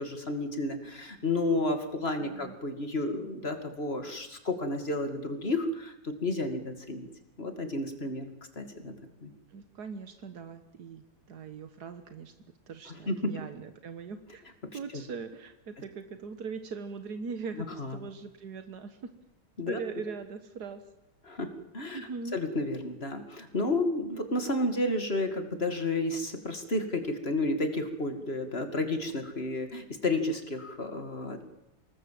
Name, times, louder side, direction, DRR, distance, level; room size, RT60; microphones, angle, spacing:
voice 1, 0.0-7.1 7.4-8.2 8.6-8.9 9.2-9.3 12.9-13.3 14.9-15.0 17.6-18.0 19.6-19.8 21.3-31.5, left 2 dB, 40° left, 7 dB, 2.7 m, -31 dB
voice 2, 2.2-2.6 9.5-12.3 12.7-19.1 19.7-20.8 21.9-22.4, right 5 dB, 85° right, 9 dB, 1.9 m, -41 dB
26.0 x 19.5 x 7.7 m, 0.90 s
omnidirectional pair, 1.7 m